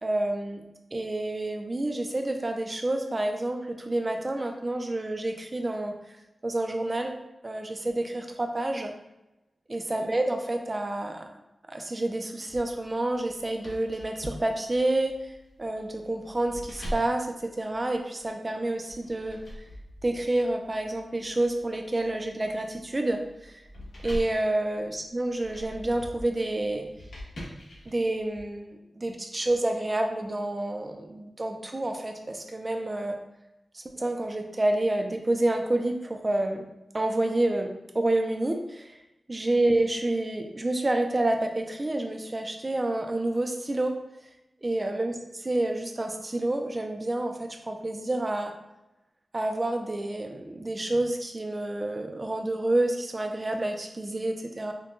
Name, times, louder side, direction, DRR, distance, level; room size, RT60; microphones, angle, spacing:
voice 1, 0.0-0.6 0.9-6.0 6.4-7.2 7.4-8.9 9.7-11.3 11.7-15.3 15.6-19.4 20.0-23.5 24.0-26.9 27.9-33.2 34.0-36.6 36.9-37.7 37.9-38.9 39.3-43.9 44.6-45.1 45.5-48.5 49.3-54.7, right 1 dB, 25° right, 4 dB, 0.4 m, -28 dB
sound 1, 12.5-18.3 18.9-28.4, equal, 90° left, 1.3 m, -43 dB
5.3 x 2.2 x 2.5 m, 0.95 s
wide cardioid pair, 120°, 0 cm